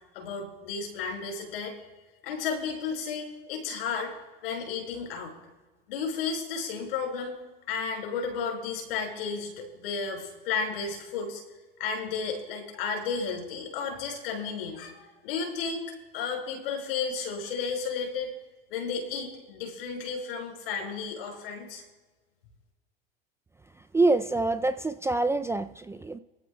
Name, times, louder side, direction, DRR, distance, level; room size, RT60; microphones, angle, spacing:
voice 1, 0.1-1.8 2.2-4.2 4.4-5.3 5.9-7.4 7.7-11.4 11.8-15.8 16.1-18.3 18.7-21.8, left 5 dB, 75° left, 0 dB, 5.2 m, -33 dB
voice 2, 23.9-26.2, right 2 dB, 10° right, 11 dB, 0.4 m, -26 dB
24.0 x 14.5 x 2.3 m, 1.2 s
hypercardioid pair, 90°, 29 cm